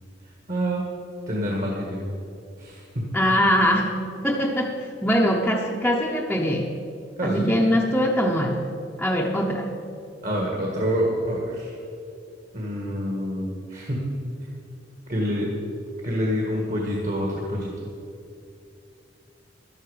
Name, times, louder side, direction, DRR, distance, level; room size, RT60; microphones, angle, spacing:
voice 1, 0.5-0.8 1.3-2.0 2.6-2.8 7.2-7.5 10.2-11.8 12.5-14.0 15.1-15.5 16.0-17.7, equal, 45° right, -2 dB, 1.7 m, -27 dB
voice 2, 3.1-6.7 7.2-8.7 9.0-9.8, equal, 5° left, -2 dB, 0.8 m, -22 dB
12.5 x 11.5 x 5.0 m, 2.6 s
head